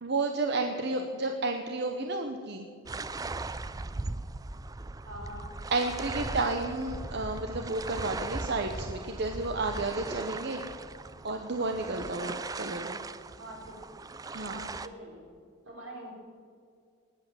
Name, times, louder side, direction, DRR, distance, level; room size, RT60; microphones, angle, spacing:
voice 1, 0.0-2.7 5.7-10.6 11.2-13.0 14.3-14.7, right 3 dB, 55° right, 5 dB, 0.9 m, -31 dB
voice 2, 0.6-1.0 5.0-5.5 13.4-13.7 14.5-15.2 15.6-16.2, right 1 dB, 85° right, -2 dB, 4.5 m, -45 dB
sound 1, 2.9-14.9, right 3 dB, 20° right, 0.4 m, -39 dB
19.5 x 8.6 x 7.4 m, 2.3 s
head